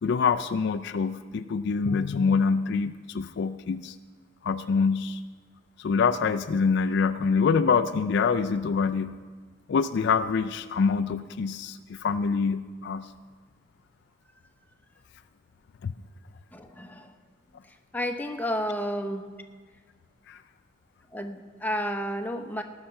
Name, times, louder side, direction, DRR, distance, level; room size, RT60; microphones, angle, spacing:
voice 1, 0.0-4.0 4.4-5.2 5.8-9.2 9.7-13.1 15.8-15.9 20.3-20.4, left 5 dB, 60° left, 10 dB, 0.4 m, -25 dB
voice 2, 16.5-17.1 17.9-19.3 21.1-22.6, equal, 10° left, 5 dB, 0.8 m, -31 dB
18.5 x 6.6 x 5.7 m, 1.5 s
head